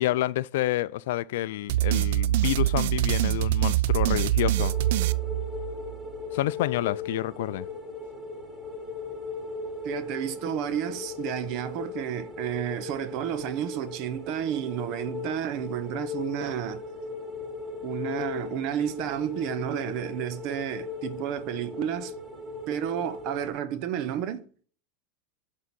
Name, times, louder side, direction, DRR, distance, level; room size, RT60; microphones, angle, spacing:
voice 1, 0.0-4.7 6.3-7.7, left 15 dB, 75° left, 0.3 m, -28 dB
sound 1, 1.7-6.0, right 15 dB, 70° right, 0.3 m, -24 dB
sound 2, 4.6-23.5, left 4 dB, ahead, 3.8 m, -38 dB
voice 2, 9.8-16.8 17.8-22.1 22.7-24.5, right 10 dB, 55° right, 0.9 m, -31 dB
7.9 x 3.8 x 4.2 m
hypercardioid pair, 110°, 0 cm